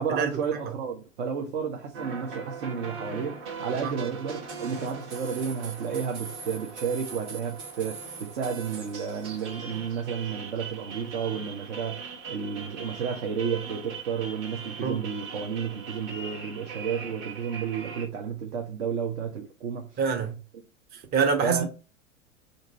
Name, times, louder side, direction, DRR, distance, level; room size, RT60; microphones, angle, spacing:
voice 1, 0.0-20.0 21.4-21.7, right 7 dB, 60° right, 0.8 m, -32 dB
sound 1, 1.9-18.0, right 5 dB, 40° right, 1.1 m, -40 dB
voice 2, 20.0-20.4 21.1-21.7, right 6 dB, 25° right, 0.6 m, -25 dB
2.6 x 2.6 x 3.9 m
figure-of-eight pair, 85°, 37 cm